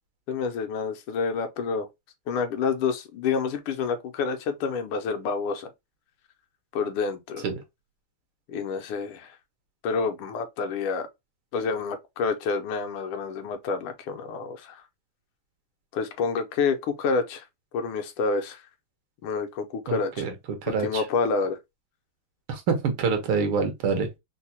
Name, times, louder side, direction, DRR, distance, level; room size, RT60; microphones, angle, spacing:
voice 1, 0.3-1.9 2.3-5.7 6.7-7.5 8.5-9.3 9.8-11.1 11.5-14.8 15.9-17.4 17.7-18.6 19.2-20.2 20.7-21.6, left 5 dB, 80° left, 1.5 m, -28 dB
voice 2, 19.9-20.3 20.6-21.0 22.5-24.1, right 5 dB, 80° right, 1.8 m, -26 dB
4.5 x 2.1 x 2.7 m
omnidirectional pair, 2.3 m